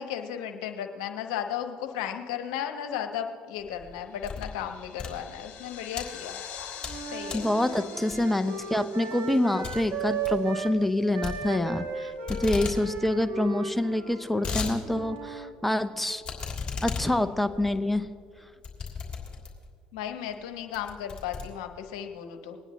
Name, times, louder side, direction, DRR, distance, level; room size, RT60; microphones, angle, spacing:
voice 1, 0.0-6.4 7.1-7.5 19.9-22.6, left 9 dB, 75° left, 6 dB, 1.0 m, -35 dB
sound 1, 3.6-4.6 4.9-6.0 6.5-7.0 7.3-7.5 8.1-8.5 8.8-8.9 9.2-9.3 9.6-9.8 10.1-10.4 11.2-12.0 12.3-12.8 13.1-13.2 13.4-13.5 14.0-14.7 15.2-15.3 16.2-19.7 20.3-20.4 20.7-22.0, left 5 dB, 25° left, 3.1 m, -35 dB
sound 2, 4.1-10.9, left 8 dB, 55° left, 1.7 m, -46 dB
Wind instrument woodwind instrument, 6.9-10.8 11.1-15.5, right 5 dB, 55° right, 1.5 m, -36 dB
voice 2, 7.3-16.2 16.8-18.1, left 1 dB, 5° left, 9 dB, 0.6 m, -26 dB
21.0 x 9.9 x 3.1 m, 2.3 s
hypercardioid pair, 65°, 3 cm